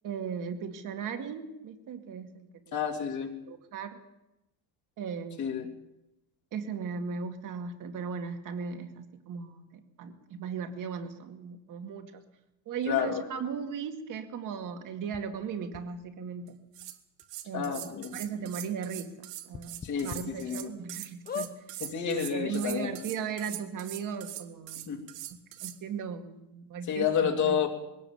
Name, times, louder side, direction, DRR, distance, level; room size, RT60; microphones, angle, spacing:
voice 1, 0.0-2.8 3.5-4.0 5.0-5.7 6.5-12.2 12.7-16.6 17.4-21.5 22.1-24.9 25.6-27.6, right 6 dB, 40° right, 6 dB, 2.3 m, -37 dB
voice 2, 2.7-3.3 5.4-5.7 12.9-13.2 17.5-18.2 19.8-20.7 21.8-22.9 24.9-25.0 26.9-27.7, left 7 dB, 40° left, 3 dB, 2.9 m, -29 dB
sound 1, 15.1-15.2 15.7-15.8 16.8-16.9 17.2-17.3 17.7-17.8 19.5-20.2 20.7-20.8 21.2-21.5 22.4-22.5 22.7-22.8, left 6 dB, 20° left, 1.0 m, -38 dB
sound 2, 16.5-16.6 16.7-25.8, right 14 dB, 70° right, 1.9 m, -42 dB
21.5 x 17.5 x 7.3 m, 0.92 s
cardioid pair, 175°, 46 cm